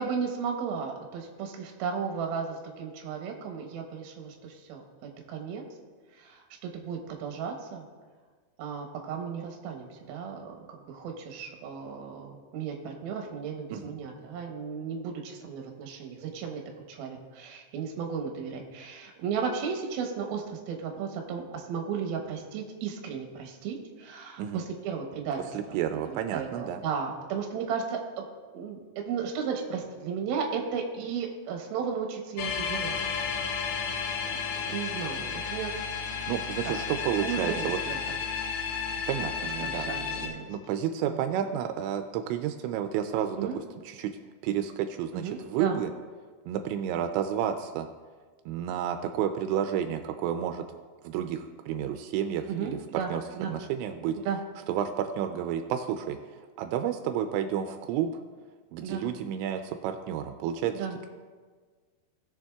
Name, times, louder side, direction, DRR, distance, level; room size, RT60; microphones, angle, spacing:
voice 1, 0.0-4.8 5.3-5.6 6.1-7.9 8.6-16.6 16.9-25.8 26.1-28.3 28.5-33.0 33.3-33.9 34.2-35.7 36.6-36.7 37.2-38.2 39.6-40.5 41.0-41.3 43.4-43.6 45.1-45.8 52.5-53.5 54.3-54.4 58.8-59.0 60.7-61.0, right 6 dB, 70° right, 2 dB, 2.7 m, -35 dB
voice 2, 25.5-26.8 36.3-37.8 39.1-39.9 40.5-43.5 43.9-44.1 44.4-45.9 46.5-47.9 48.5-50.7 51.0-53.2 53.5-54.2 54.7-56.2 56.6-58.1 58.7-61.1, right 9 dB, 85° right, 7 dB, 2.8 m, -31 dB
sound 1, 32.4-40.3, left 6 dB, 80° left, 2.9 m, -32 dB
19.5 x 6.9 x 2.3 m, 1.5 s
omnidirectional pair, 5.1 m